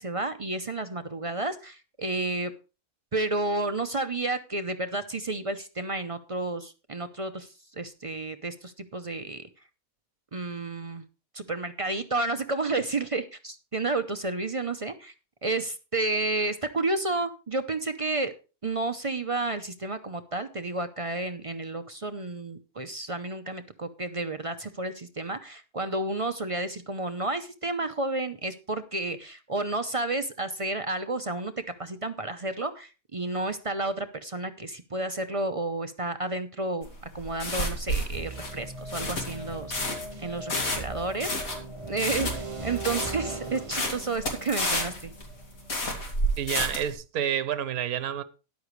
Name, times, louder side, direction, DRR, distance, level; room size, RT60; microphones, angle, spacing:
voice 1, 0.0-2.5 3.1-9.4 10.3-11.0 11.3-15.1 15.4-18.3 18.6-31.5 31.8-36.9 37.1-41.5 41.9-45.1, right 2 dB, 40° right, 0.4 m, -31 dB
sound 1, 36.8-46.9, equal, 65° left, 2.9 m, -31 dB
sound 2, 38.1-46.0, right 2 dB, 20° right, 1.2 m, -40 dB
voice 2, 46.4-48.2, right 10 dB, 70° right, 1.3 m, -29 dB
13.5 x 10.5 x 3.2 m
omnidirectional pair, 1.6 m